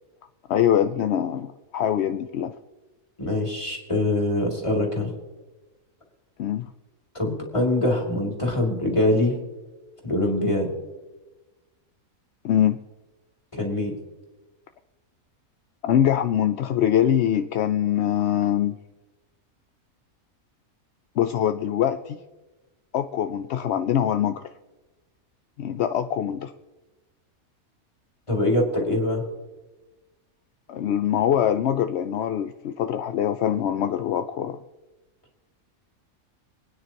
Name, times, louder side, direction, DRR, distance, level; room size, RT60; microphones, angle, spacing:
voice 1, 0.5-2.5 6.4-6.7 12.4-12.8 15.8-18.8 21.2-22.2 22.9-24.5 25.6-26.5 30.7-34.6, left 10 dB, 65° left, 9 dB, 0.7 m, -23 dB
voice 2, 3.2-5.1 7.1-9.4 10.0-10.7 13.5-14.0 28.3-29.2, left 1 dB, 20° left, 0 dB, 2.7 m, -23 dB
26.5 x 9.5 x 3.0 m, 1.1 s
omnidirectional pair, 1.5 m